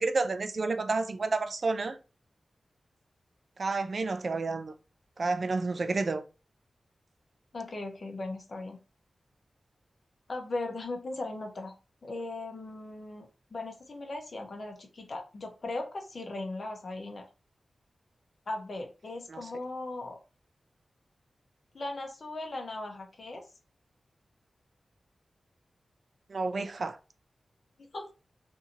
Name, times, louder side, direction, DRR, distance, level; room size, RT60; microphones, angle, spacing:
voice 1, 0.0-2.0 3.6-4.7 5.2-6.2 19.3-19.4 26.3-27.0, right 3 dB, 55° right, 0.3 m, -30 dB
voice 2, 7.5-8.8 10.3-11.7 12.0-17.2 18.5-20.2 21.7-23.4 27.9-28.1, left 2 dB, 55° left, 0.7 m, -38 dB
2.7 x 2.6 x 2.5 m
wide cardioid pair, 95°, 0 cm